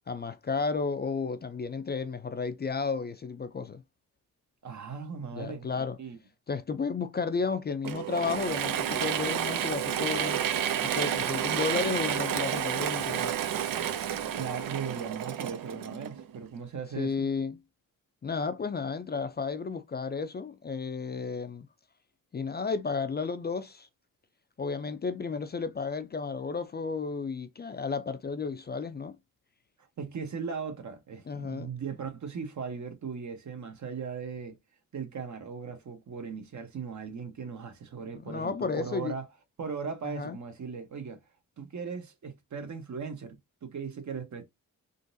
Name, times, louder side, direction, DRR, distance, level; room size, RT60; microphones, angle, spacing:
voice 1, 0.1-3.8 5.3-6.0 6.5-10.4 10.8-13.4 17.0-17.6 18.2-21.7 22.3-23.9 24.6-29.2 31.3-31.7 38.3-39.1 40.0-40.4, left 5 dB, 30° left, 0.4 m, -33 dB
voice 2, 4.6-6.2 14.3-17.3 30.0-34.6 34.9-39.3 39.6-41.2 41.6-44.4, right 6 dB, 60° right, 1.0 m, -38 dB
Mechanisms / Drill, 7.8-16.5, right 10 dB, 85° right, 0.6 m, -30 dB
3.8 x 2.5 x 2.6 m
cardioid pair, 90°, 33 cm